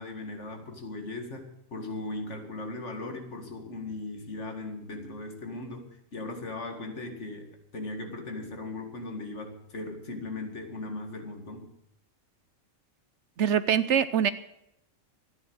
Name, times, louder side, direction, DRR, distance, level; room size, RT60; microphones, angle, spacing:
voice 1, 0.0-11.7, left 2 dB, 60° left, 4 dB, 2.3 m, -38 dB
voice 2, 13.4-14.3, right 8 dB, 65° right, 14 dB, 0.9 m, -23 dB
13.5 x 10.5 x 8.0 m, 0.80 s
omnidirectional pair, 1.4 m